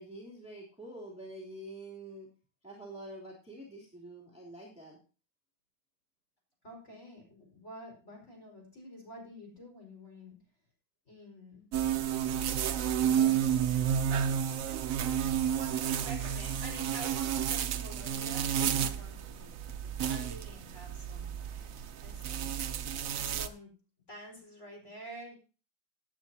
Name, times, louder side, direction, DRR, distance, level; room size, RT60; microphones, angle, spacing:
voice 1, 0.0-2.3 2.6-5.0, right 1 dB, 5° right, -4 dB, 2.9 m, -46 dB
voice 2, 6.6-10.4 11.1-11.7 13.0-13.6 15.6-19.5 19.8-21.7 22.0-22.6 23.1-23.7 24.1-25.3, equal, 30° left, 0 dB, 5.3 m, -49 dB
sound 1, 11.7-23.5, right 9 dB, 80° right, 0.7 m, -31 dB
17.5 x 9.1 x 2.8 m, 0.35 s
omnidirectional pair, 2.4 m